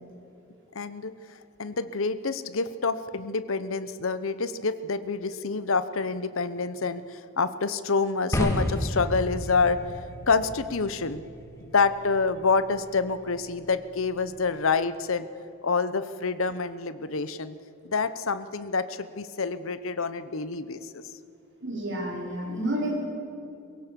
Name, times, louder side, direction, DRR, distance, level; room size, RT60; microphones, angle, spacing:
voice 1, 0.7-1.1 1.6-9.8 10.3-11.2 11.6-15.3 15.6-17.5 17.8-21.0, left 4 dB, 65° left, 13 dB, 0.8 m, -27 dB
sound 1, 8.3-14.5, equal, 15° left, 1.7 m, -34 dB
voice 2, 21.6-23.1, right 1 dB, 55° right, -2 dB, 4.8 m, -30 dB
22.5 x 16.5 x 6.9 m, 2.8 s
head